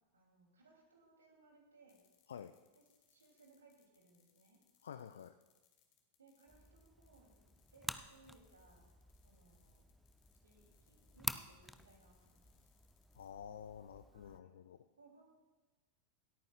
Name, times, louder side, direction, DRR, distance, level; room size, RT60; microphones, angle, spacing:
voice 1, 0.1-2.0 2.7-4.6 6.2-8.9 9.2-9.8 10.4-12.7 14.1-14.5 15.0-15.2, right 3 dB, 70° right, 0 dB, 2.9 m, -66 dB
sound 1, 1.9-13.3, left 9 dB, 45° left, 2.3 m, -76 dB
voice 2, 4.8-5.4 13.1-14.8, left 8 dB, 65° left, 11 dB, 0.4 m, -50 dB
sound 2, 6.5-14.4, equal, ahead, 0.5 m, -49 dB
27.0 x 9.0 x 2.4 m, 1.2 s
figure-of-eight pair, 90°, 0 cm